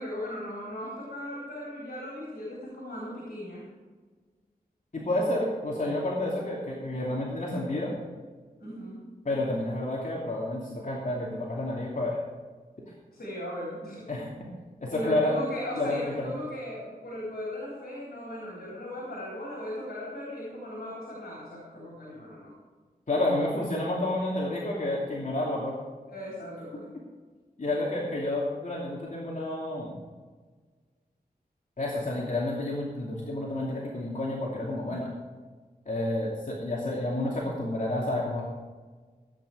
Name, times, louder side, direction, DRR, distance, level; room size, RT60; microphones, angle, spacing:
voice 1, 0.0-3.7 8.6-9.1 13.1-14.3 14.9-22.5 26.1-26.9, left 1 dB, 80° left, -5 dB, 4.2 m, -38 dB
voice 2, 4.9-7.9 9.2-12.2 14.1-14.3 14.8-15.3 15.8-16.3 23.1-25.8 27.6-30.0 31.8-35.1 35.8-38.4, left 1 dB, 50° left, -5 dB, 2.7 m, -30 dB
16.0 x 9.2 x 5.0 m, 1.4 s
wide cardioid pair, 85°, 16 cm